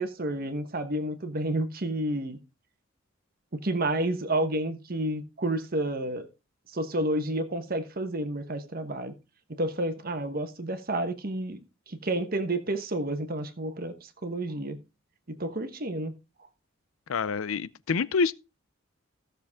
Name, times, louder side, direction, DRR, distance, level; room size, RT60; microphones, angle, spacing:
voice 1, 0.0-2.4 3.5-6.3 6.7-9.1 9.6-11.6 11.9-14.8 15.3-16.1, right 1 dB, 45° right, 1.2 m, -30 dB
voice 2, 17.1-18.3, left 5 dB, 80° left, 0.5 m, -27 dB
15.5 x 6.9 x 3.6 m
head